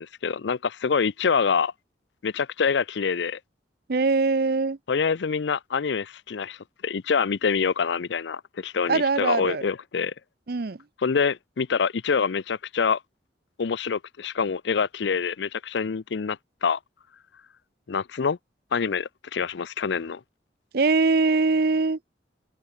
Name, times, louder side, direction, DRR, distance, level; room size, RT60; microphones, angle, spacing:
voice 1, 0.0-1.7 2.2-3.4 4.9-6.6 6.8-10.1 11.0-13.0 13.6-16.8 17.9-18.4 18.7-20.2, left 5 dB, 70° left, 0.5 m, -26 dB
voice 2, 3.9-4.8 8.9-9.6 10.5-10.8 20.7-22.0, right 4 dB, 55° right, 0.6 m, -22 dB
head